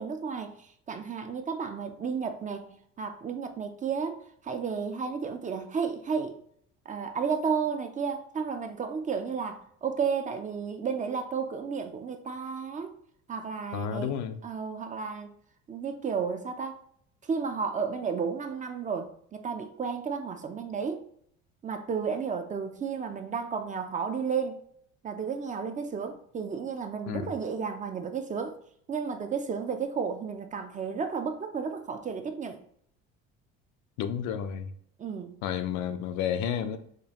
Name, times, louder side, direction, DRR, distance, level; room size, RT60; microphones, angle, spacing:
voice 1, 0.0-6.4 6.9-13.0 13.3-14.1 14.4-15.3 15.7-16.8 17.2-21.0 21.6-24.6 25.0-28.6 28.9-32.6 35.0-35.4, right 6 dB, 25° right, 0.4 m, -32 dB
voice 2, 13.7-14.4 27.1-27.3 34.0-34.7 35.4-36.8, left 8 dB, 70° left, 0.5 m, -31 dB
5.0 x 2.3 x 2.9 m
cardioid pair, 110°, 31 cm